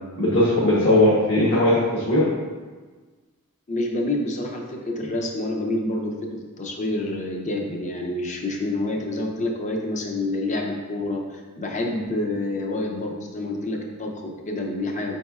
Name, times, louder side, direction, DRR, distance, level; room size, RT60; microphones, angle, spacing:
voice 1, 0.2-2.3, left 1 dB, 60° left, -7 dB, 1.0 m, -18 dB
voice 2, 3.7-15.2, left 2 dB, 35° left, 1 dB, 0.6 m, -28 dB
5.3 x 4.1 x 2.4 m, 1.4 s
head